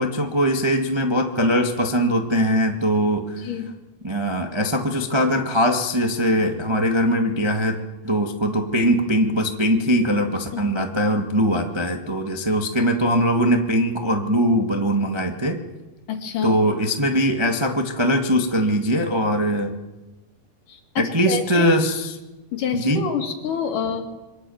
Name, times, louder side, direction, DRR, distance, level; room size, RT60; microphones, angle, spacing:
voice 1, 0.0-3.4 4.0-7.8 8.0-15.6 16.4-19.8 20.9-22.2 22.7-23.0, equal, 15° right, 3 dB, 0.9 m, -21 dB
voice 2, 16.1-16.6 20.7-21.7 22.5-24.0, left 7 dB, 65° left, 4 dB, 3.9 m, -27 dB
27.5 x 24.0 x 7.3 m, 1.1 s
omnidirectional pair, 4.2 m